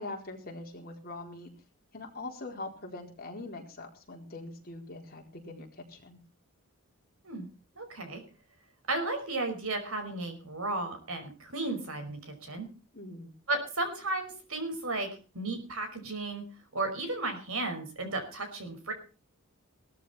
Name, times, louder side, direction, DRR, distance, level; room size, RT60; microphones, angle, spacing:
voice 1, 0.0-1.5 1.9-6.2 12.9-13.3, left 2 dB, 45° left, 1 dB, 4.4 m, -42 dB
voice 2, 7.8-8.2 8.9-12.7 13.5-15.1 15.3-16.4 16.7-18.9, right 2 dB, 70° right, 6 dB, 5.4 m, -34 dB
18.0 x 13.5 x 4.3 m, 0.35 s
head